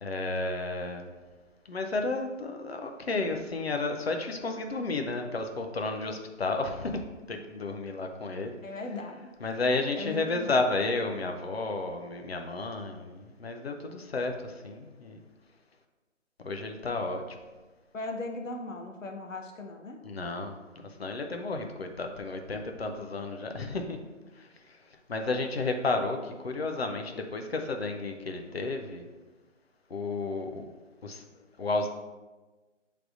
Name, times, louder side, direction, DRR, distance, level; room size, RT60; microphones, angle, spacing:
voice 1, 0.0-1.1 1.7-8.5 9.4-15.2 16.4-17.4 20.0-24.0 24.4-29.0 29.9-30.6 31.0-31.2 31.6-31.9, left 3 dB, 55° left, 4 dB, 0.6 m, -32 dB
voice 2, 8.6-9.3 10.0-10.5 17.9-20.1, left 2 dB, 80° left, 4 dB, 0.8 m, -38 dB
6.2 x 3.3 x 2.5 m, 1.2 s
figure-of-eight pair, 165°, 38 cm